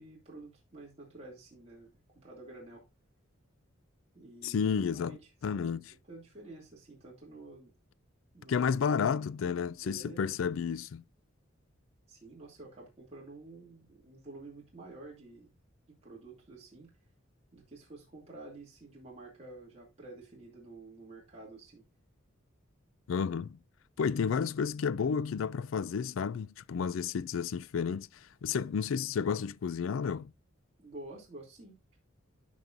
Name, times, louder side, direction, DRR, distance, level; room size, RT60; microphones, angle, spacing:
voice 1, 0.0-2.8 4.1-4.7 4.9-5.2 5.5-7.7 8.3-8.5 9.0-9.2 9.8-10.2 12.1-15.5 16.0-16.9 17.5-21.8 30.8-31.8, right 2 dB, 30° right, 2.5 m, -50 dB
voice 2, 4.4-5.2 5.4-5.8 8.5-11.0 23.1-23.6 24.0-30.3, left 6 dB, 70° left, 0.4 m, -31 dB
12.5 x 5.4 x 2.5 m
head